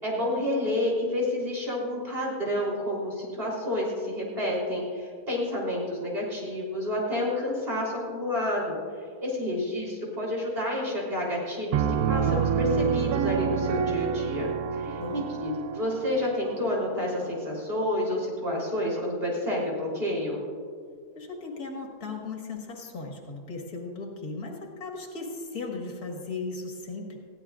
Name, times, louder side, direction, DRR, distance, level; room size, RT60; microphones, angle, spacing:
voice 1, 0.0-20.4, left 1 dB, 40° right, -4 dB, 3.9 m, -29 dB
Piano, 11.7-17.3, right 7 dB, 75° right, 1.1 m, -28 dB
voice 2, 21.1-27.2, left 3 dB, 90° left, 1 dB, 2.2 m, -37 dB
20.5 x 15.0 x 2.5 m, 2.1 s
omnidirectional pair, 1.6 m